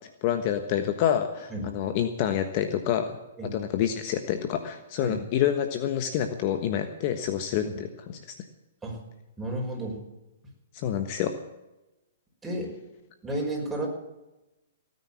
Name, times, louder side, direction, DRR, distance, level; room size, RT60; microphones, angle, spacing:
voice 1, 0.2-3.1 3.5-8.3 10.7-11.3, left 10 dB, 40° left, 7 dB, 1.3 m, -27 dB
voice 2, 9.4-10.0 12.4-12.7 13.2-13.9, right 1 dB, 10° right, -1 dB, 5.7 m, -32 dB
17.5 x 9.7 x 7.6 m, 0.98 s
hypercardioid pair, 125°, 0 cm